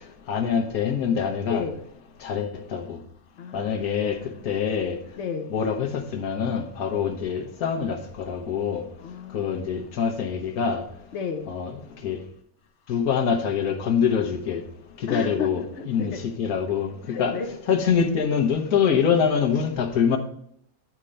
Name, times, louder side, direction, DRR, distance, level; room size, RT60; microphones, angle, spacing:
voice 1, 0.3-1.6 2.2-3.0 3.5-4.2 4.4-5.0 5.5-8.8 9.3-10.8 11.5-11.7 12.0-12.2 12.9-14.6 15.0-17.4 17.7-20.2, left 7 dB, 90° left, 1.5 m, -25 dB
voice 2, 1.5-1.8 3.4-4.2 5.2-5.5 9.0-9.9 11.1-11.5 15.1-16.2 17.1-17.5, left 5 dB, 55° left, 1.1 m, -33 dB
9.8 x 4.4 x 5.2 m
omnidirectional pair, 1.5 m